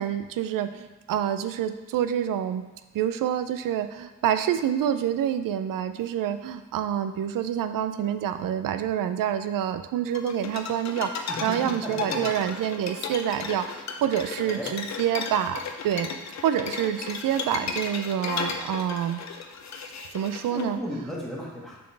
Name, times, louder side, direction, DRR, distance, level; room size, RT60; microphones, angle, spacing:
voice 1, 0.0-2.7 2.9-11.1 11.4-16.1 16.4-19.2 20.1-20.8, right 10 dB, 80° right, 10 dB, 0.5 m, -27 dB
sound 1, 10.1-20.6, left 5 dB, 55° left, 0.6 m, -34 dB
voice 2, 11.3-12.3 14.4-14.7 20.5-21.8, equal, ahead, -4 dB, 1.5 m, -35 dB
6.7 x 4.3 x 3.3 m, 1.1 s
cardioid pair, 90°, 33 cm